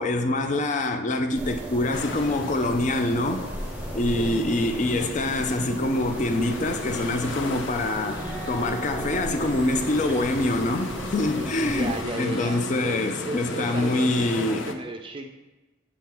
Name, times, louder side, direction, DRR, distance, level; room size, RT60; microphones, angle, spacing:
voice 1, 0.0-3.4 3.9-8.2 8.5-14.7, left 2 dB, 40° left, 0.4 m, -25 dB
sound 1, 1.3-12.0, equal, 5° right, 0.8 m, -36 dB
sound 2, 1.9-14.7, left 3 dB, 90° left, 0.6 m, -37 dB
voice 2, 3.9-4.5 11.6-15.3, right 2 dB, 25° right, 0.4 m, -35 dB
sound 3, 5.3-12.1, right 2 dB, 10° left, 1.4 m, -38 dB
8.2 x 4.4 x 3.8 m
head